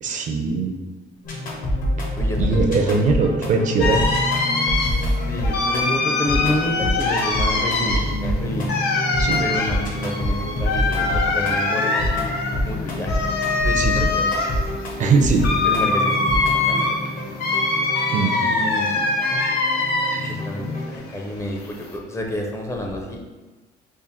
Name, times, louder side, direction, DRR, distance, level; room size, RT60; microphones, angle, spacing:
voice 1, 0.0-0.7 2.4-4.0 9.2-9.4 13.8-14.1 15.0-15.5 18.1-18.3, right 4 dB, 45° right, 3 dB, 0.4 m, -20 dB
sound 1, 1.2-21.0, left 1 dB, 55° left, 0.9 m, -27 dB
voice 2, 2.1-2.9 5.3-8.7 9.4-13.2 13.5-14.5 15.6-17.0 17.3-17.4 18.4-18.9 20.2-23.2, left 1 dB, 15° left, 1 dB, 0.5 m, -29 dB
sound 2, 3.8-20.5 20.8-22.0, left 3 dB, 80° left, 0.6 m, -23 dB
3.6 x 2.0 x 4.1 m, 1.3 s
cardioid pair, 110°, 17 cm